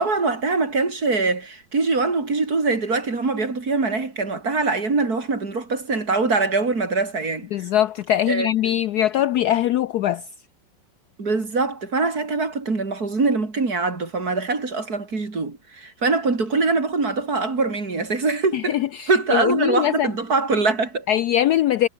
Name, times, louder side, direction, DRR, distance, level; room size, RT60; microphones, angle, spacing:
voice 1, 0.0-7.5 8.3-8.5 11.2-18.8 19.1-21.1, right 3 dB, 50° right, 4.0 m, -23 dB
voice 2, 7.5-10.2 18.5-20.1 21.1-21.9, left 12 dB, 70° left, 1.0 m, -21 dB
omnidirectional pair, 2.1 m